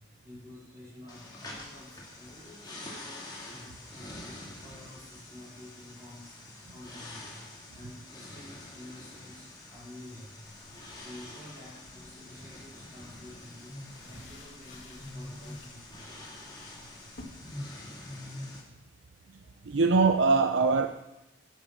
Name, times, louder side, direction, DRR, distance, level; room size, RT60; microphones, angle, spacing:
voice 1, 0.0-7.4 7.7-10.3 11.0-16.5, left 1 dB, 20° right, -10 dB, 3.6 m, -50 dB
sound 1, 1.1-18.6, left 1 dB, 20° left, 2.3 m, -46 dB
sound 2, 10.4-17.2, left 2 dB, 65° left, 2.1 m, -56 dB
voice 2, 19.6-20.9, right 4 dB, 65° right, 6 dB, 0.6 m, -22 dB
10.5 x 7.0 x 6.2 m, 0.97 s
head